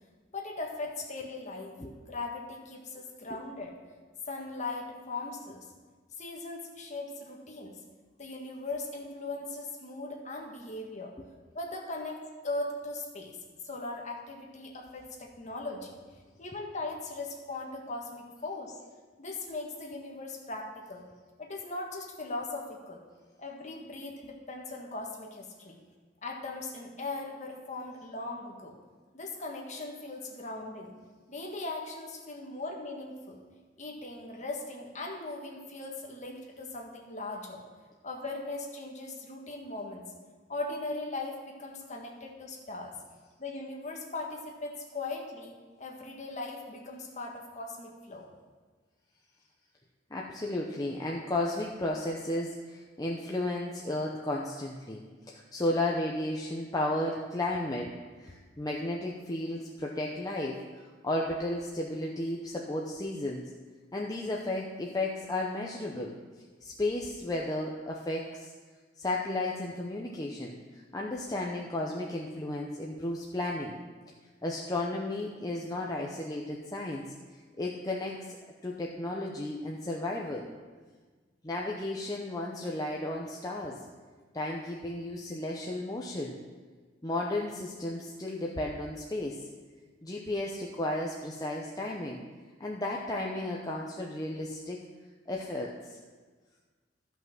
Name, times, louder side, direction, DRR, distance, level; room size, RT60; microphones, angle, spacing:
voice 1, 0.3-1.7 2.1-3.7 4.3-5.6 6.2-7.7 8.2-11.1 11.5-13.4 13.6-16.0 16.4-18.8 19.2-21.0 21.4-23.0 23.4-25.8 26.2-28.7 29.1-30.9 31.3-33.4 33.8-37.6 38.0-40.0 40.5-42.9 43.4-48.3, left 2 dB, 40° left, 0 dB, 1.6 m, -39 dB
voice 2, 50.1-55.0 55.3-57.9 58.2-60.6 61.0-63.4 63.9-66.1 66.6-68.5 69.0-73.8 74.4-77.1 77.6-78.4 78.6-80.5 81.4-83.8 84.3-86.4 87.0-89.4 90.0-92.2 92.6-94.8 95.3-96.0, left 1 dB, 20° left, -1 dB, 0.8 m, -33 dB
13.0 x 5.7 x 6.1 m, 1.4 s
head